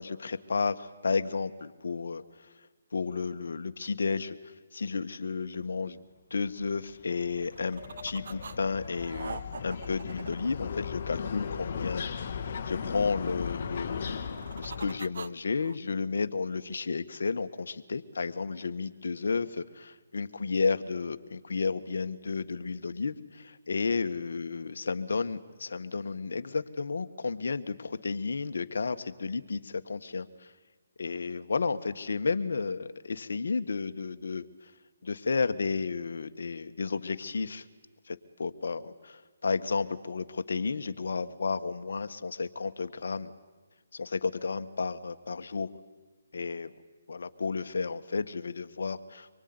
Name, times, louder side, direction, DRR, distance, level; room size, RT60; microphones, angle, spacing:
voice 1, 0.0-2.5 2.9-6.0 6.3-12.0 12.7-30.5 31.0-34.7 35.0-37.7 38.1-43.3 43.9-45.7 46.3-46.7 47.1-49.3, left 4 dB, 75° left, 10 dB, 1.6 m, -32 dB
sound 1, 6.6-15.0, left 6 dB, 45° left, 2.1 m, -37 dB
sound 2, 7.4-8.6 8.8-11.3 14.0-15.8, right 5 dB, 65° right, 0.9 m, -44 dB
26.0 x 23.0 x 9.7 m, 1.3 s
hypercardioid pair, 155°, 0 cm